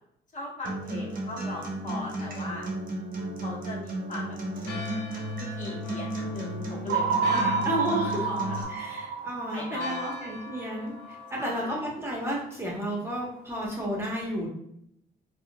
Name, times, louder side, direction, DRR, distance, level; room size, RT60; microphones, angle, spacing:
voice 1, 0.3-2.7 3.4-4.4 5.6-7.6 7.9-8.0 8.2-8.4 9.5-10.4 11.4-11.8, left 2 dB, 35° left, -4 dB, 1.4 m, -38 dB
Acoustic guitar, 0.6-8.6, right 1 dB, 45° right, 1.0 m, -34 dB
Church bell, 4.6-13.5, left 3 dB, 90° left, 0.7 m, -45 dB
sound 1, 6.9-11.1, right 5 dB, 65° right, 0.5 m, -29 dB
voice 2, 7.3-8.3 8.7-14.5, equal, 10° right, -5 dB, 1.2 m, -32 dB
3.5 x 2.5 x 2.3 m, 0.74 s
supercardioid pair, 60°, 21 cm